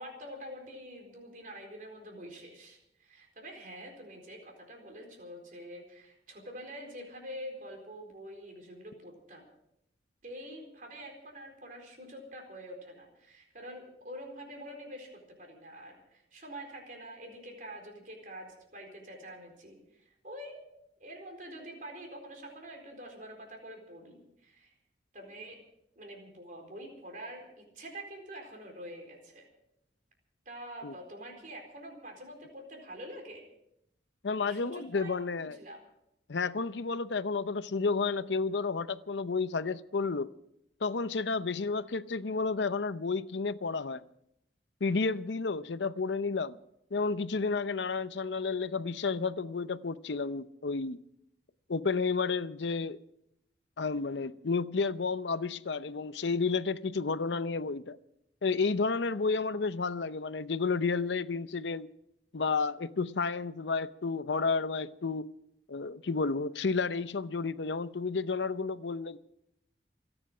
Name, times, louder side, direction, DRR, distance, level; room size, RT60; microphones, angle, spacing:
voice 1, 0.0-9.4 10.2-15.1 15.4-20.6 21.0-24.7 25.1-25.6 26.0-29.5 30.5-33.5 34.4-35.8, equal, 50° right, 4.2 m, -46 dB
voice 2, 34.2-35.6 36.3-40.3 40.8-44.0 44.8-46.6 46.9-51.0 51.7-53.0 53.8-58.0 58.4-61.9 62.3-65.3 65.7-69.2, left 4 dB, 85° left, 0.7 m, -31 dB
28.0 x 9.9 x 5.0 m
head